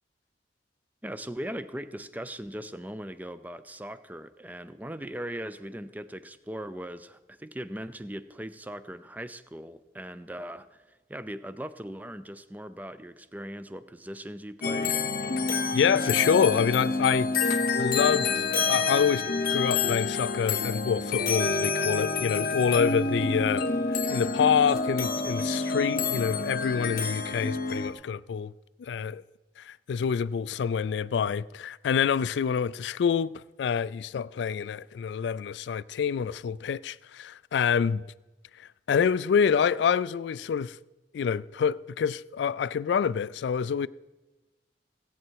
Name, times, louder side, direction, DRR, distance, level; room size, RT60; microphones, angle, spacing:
voice 1, 1.0-15.0, right 1 dB, 10° right, 0.5 m, -39 dB
sound 1, 14.6-27.9, left 4 dB, 55° left, 0.7 m, -28 dB
voice 2, 15.7-17.3 17.8-19.3 19.5-23.7 24.1-28.5 28.8-29.2 29.6-38.0 38.9-40.8 41.1-43.9, left 7 dB, 75° left, 0.3 m, -26 dB
17.0 x 8.6 x 4.6 m
head